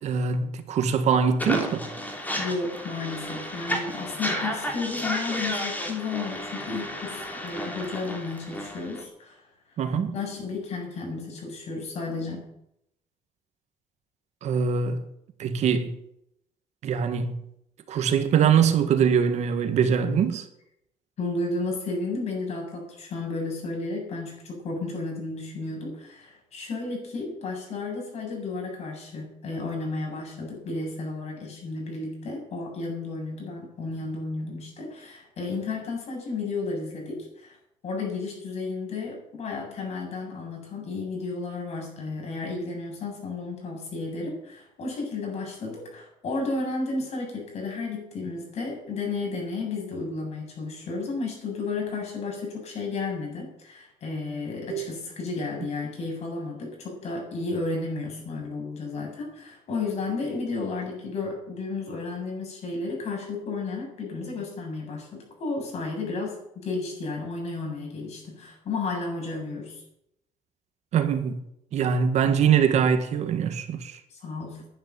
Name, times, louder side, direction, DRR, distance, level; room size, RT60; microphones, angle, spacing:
voice 1, 0.0-1.9 9.8-10.1 14.4-15.0 15.4-16.0 16.8-17.3 17.9-20.4 54.7-54.9 70.9-71.4 71.7-74.0, right 7 dB, 65° right, 1.9 m, -23 dB
sound 1, 1.4-9.0, left 1 dB, 15° left, 3.5 m, -32 dB
voice 2, 2.4-9.4 9.9-12.5 21.2-37.6 37.8-69.8 74.1-74.6, left 3 dB, 60° left, 7.8 m, -33 dB
11.5 x 9.7 x 9.1 m
cardioid pair, 115°, 12 cm